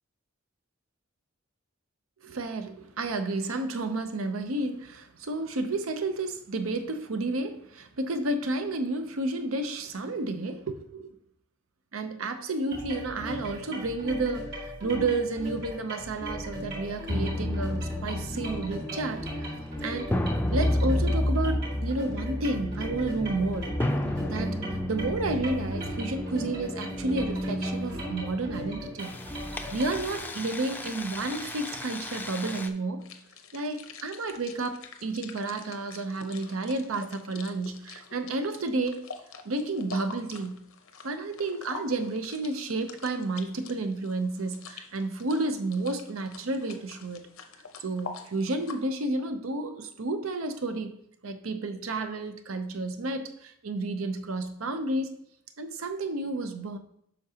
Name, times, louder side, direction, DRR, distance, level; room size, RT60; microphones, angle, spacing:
voice 1, 2.2-11.2 11.9-19.6 19.8-20.1 20.5-23.8 24.3-24.6 24.9-29.2 29.7-33.1 33.5-39.0 39.4-40.6 41.0-47.2 47.8-50.9 51.2-55.1 55.6-56.8, right 2 dB, 85° right, 0.7 m, -31 dB
sound 1, 12.7-30.2, equal, 50° right, 3.0 m, -38 dB
sound 2, 17.1-32.7, left 1 dB, 10° left, 0.4 m, -32 dB
sound 3, 33.0-48.8, left 5 dB, 90° left, 0.7 m, -46 dB
8.4 x 5.9 x 2.8 m
head